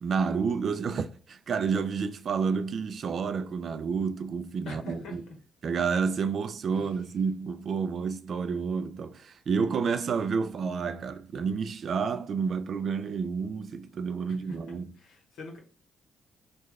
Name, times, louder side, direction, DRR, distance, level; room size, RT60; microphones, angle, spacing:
voice 1, 0.0-5.2 5.6-14.9, right 5 dB, 55° right, 0.3 m, -30 dB
voice 2, 4.6-5.3 6.7-7.0 14.5-14.6 15.0-15.6, left 2 dB, 75° left, 1.0 m, -43 dB
3.1 x 2.2 x 3.4 m
cardioid pair, 90°, 0 cm